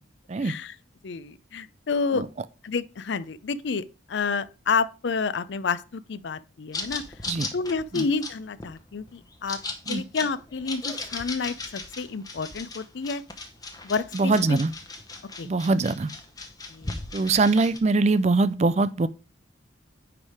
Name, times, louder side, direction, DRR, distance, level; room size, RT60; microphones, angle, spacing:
voice 1, 0.4-0.8 1.0-2.2 2.6-7.0 7.5-9.6 9.9-13.2 13.8-14.6 15.4-15.5 16.7-16.9, left 4 dB, 65° left, 0.5 m, -29 dB
sound 1, 6.7-17.8, left 3 dB, 20° left, 0.8 m, -37 dB
voice 2, 14.1-14.7 15.4-16.1 17.1-19.1, right 3 dB, 35° right, 0.4 m, -22 dB
9.6 x 3.4 x 4.8 m
head